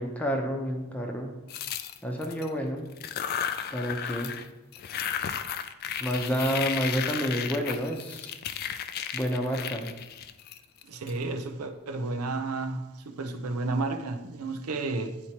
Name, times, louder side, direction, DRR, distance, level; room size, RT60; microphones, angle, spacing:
voice 1, 0.0-1.3 2.0-2.9 3.7-4.3 6.0-8.3 9.1-9.9, equal, 5° left, 1 dB, 0.8 m, -29 dB
sound 1, 1.5-2.5 2.9-4.5 4.7-11.1, left 8 dB, 45° left, 0.3 m, -34 dB
voice 2, 10.8-15.2, right 3 dB, 80° right, 6 dB, 0.6 m, -32 dB
9.7 x 4.3 x 2.9 m, 1.0 s
head